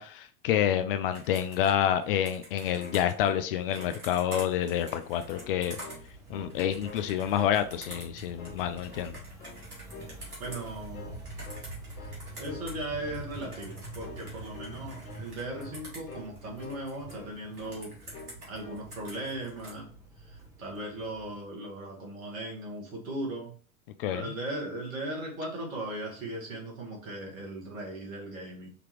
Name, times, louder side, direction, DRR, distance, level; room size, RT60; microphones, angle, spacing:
voice 1, 0.0-5.8 6.3-9.2 24.0-24.2, left 10 dB, 40° left, 10 dB, 0.4 m, -28 dB
Computer keyboard, 1.1-12.8 13.1-17.1 17.5-19.8, right 1 dB, 85° right, 2.1 m, -48 dB
sound 1, 2.5-4.0 4.3-4.5 4.8-5.5 5.8-6.6 6.8-7.6 7.9-8.1 8.4-9.1 9.4-9.6 9.9-10.2 10.4-11.2 11.4-11.7 12.0-12.2 12.5-12.7 13.0-13.2 13.5-13.7 14.0-14.3 14.5-14.8 15.0-15.3 15.6-15.8 16.1-16.3 16.6-17.4 17.6-17.8 18.1-18.4 18.6-18.9, left 4 dB, 70° left, 1.2 m, -47 dB
sound 2, 5.0-21.4, right 2 dB, 5° right, 0.9 m, -46 dB
voice 2, 10.4-11.3 12.4-17.9 18.5-19.9 20.2-23.5 24.1-28.7, right 1 dB, 65° right, -1 dB, 2.0 m, -38 dB
5.1 x 2.9 x 3.2 m, 0.43 s
figure-of-eight pair, 85°, 44 cm